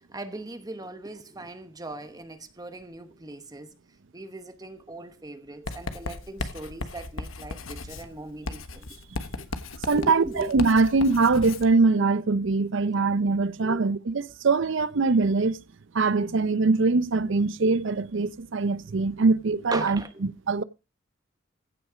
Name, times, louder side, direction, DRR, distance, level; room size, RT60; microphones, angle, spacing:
voice 1, 0.0-3.7 4.1-8.9 9.4-9.5 9.9-10.5 13.6-13.9 19.7-20.2, right 2 dB, 20° right, 1.0 m, -38 dB
Writing, 5.7-11.7, left 3 dB, 80° left, 1.3 m, -36 dB
voice 2, 9.9-15.6 15.9-20.0 20.5-20.6, right 3 dB, 65° right, 0.6 m, -22 dB
15.5 x 6.2 x 5.0 m
head